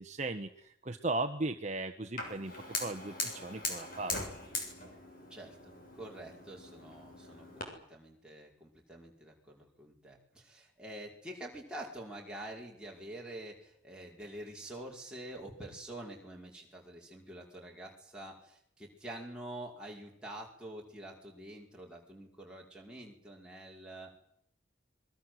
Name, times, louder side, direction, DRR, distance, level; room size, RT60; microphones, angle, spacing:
voice 1, 0.0-2.5 2.8-4.2, right 2 dB, 35° right, 5 dB, 1.3 m, -37 dB
Fire, 2.2-7.6, left 3 dB, 45° left, 7.1 m, -41 dB
voice 2, 5.3-24.1, right 1 dB, 5° right, -2 dB, 5.4 m, -47 dB
26.5 x 22.5 x 8.0 m, 0.70 s
head